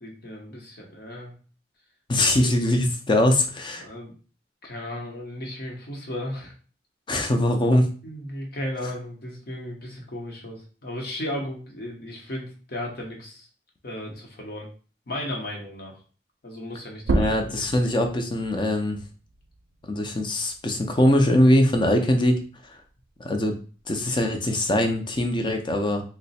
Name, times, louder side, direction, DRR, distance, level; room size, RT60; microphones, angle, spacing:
voice 1, 0.0-1.4 2.2-2.5 3.8-4.1 4.6-6.5 8.0-13.5 13.8-14.7 15.1-16.0 16.4-17.9, left 1 dB, 60° left, 0 dB, 0.9 m, -35 dB
voice 2, 2.1-3.9 7.1-7.9 17.1-19.0 19.9-22.8 23.2-23.6 23.9-26.0, left 1 dB, 25° left, 5 dB, 0.5 m, -22 dB
sound 1, 17.0-22.2 22.6-24.4, right 2 dB, 75° right, 0.4 m, -33 dB
3.1 x 2.1 x 4.1 m, 0.39 s
head